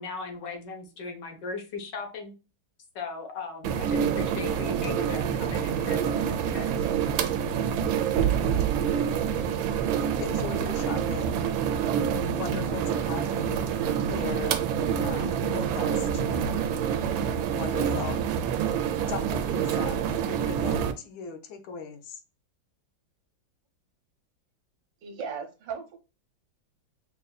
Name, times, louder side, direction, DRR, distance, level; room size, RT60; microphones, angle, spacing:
voice 1, 0.0-2.3 3.0-6.7, left 4 dB, 65° left, 1.6 m, -38 dB
sound 1, 3.6-20.9, right 8 dB, 90° right, 1.4 m, -27 dB
voice 2, 10.0-11.4 12.3-13.6 14.1-14.6 15.0-16.7 17.5-18.3 19.1-22.2, left 6 dB, 85° left, 1.5 m, -38 dB
voice 3, 25.0-26.0, right 6 dB, 70° right, 1.5 m, -36 dB
5.3 x 2.6 x 2.2 m
omnidirectional pair, 2.1 m